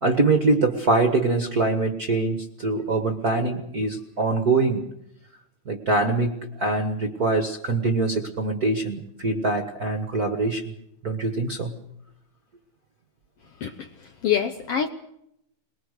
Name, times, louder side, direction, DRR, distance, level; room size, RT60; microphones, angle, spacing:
voice 1, 0.0-4.9 5.6-10.7 11.0-11.7, right 3 dB, 45° right, 1.3 m, -23 dB
voice 2, 13.6-14.9, left 9 dB, 65° left, 1.6 m, -26 dB
23.5 x 21.0 x 6.6 m
omnidirectional pair, 3.8 m